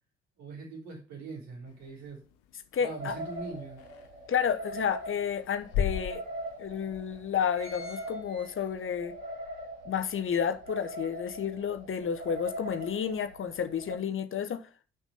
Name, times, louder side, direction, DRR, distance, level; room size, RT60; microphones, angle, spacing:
voice 1, 0.4-2.2 2.8-3.8, right 3 dB, 70° right, 3.9 m, -41 dB
sound 1, 1.7-7.6, left 8 dB, 75° left, 0.9 m, -38 dB
voice 2, 2.7-3.1 4.3-6.2 6.6-9.2 9.9-14.7, left 7 dB, 45° left, 1.0 m, -31 dB
sound 2, 3.0-14.0, right 1 dB, 85° right, 3.3 m, -42 dB
sound 3, 3.3-3.4 3.9-5.0 5.7-5.8 6.0-6.1 6.8-7.0 7.3-9.1 9.5-9.6, left 1 dB, ahead, 3.0 m, -51 dB
6.2 x 6.0 x 6.7 m
hypercardioid pair, 45°, 29 cm